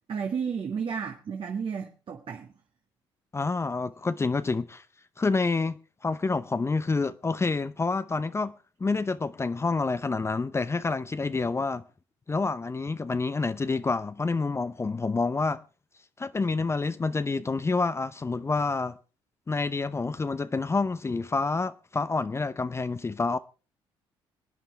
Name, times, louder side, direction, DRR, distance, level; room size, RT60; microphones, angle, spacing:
voice 1, 0.1-2.5, right 6 dB, 50° right, 1.8 m, -32 dB
voice 2, 3.3-4.8 5.2-8.5 8.8-11.8 12.3-15.6 16.2-19.0 19.5-23.4, left 3 dB, 25° left, 0.7 m, -28 dB
26.5 x 9.3 x 3.4 m
supercardioid pair, 65°, 11 cm